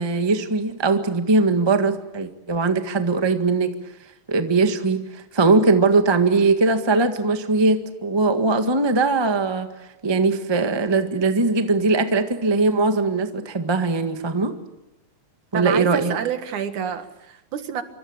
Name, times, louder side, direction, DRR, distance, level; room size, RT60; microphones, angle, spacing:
voice 1, 0.0-3.7 4.3-9.7 10.0-14.5 15.5-16.1, right 3 dB, 35° right, 7 dB, 0.4 m, -20 dB
voice 2, 15.5-17.8, right 8 dB, 65° right, 9 dB, 3.0 m, -28 dB
26.0 x 25.0 x 8.8 m, 0.90 s
omnidirectional pair, 3.9 m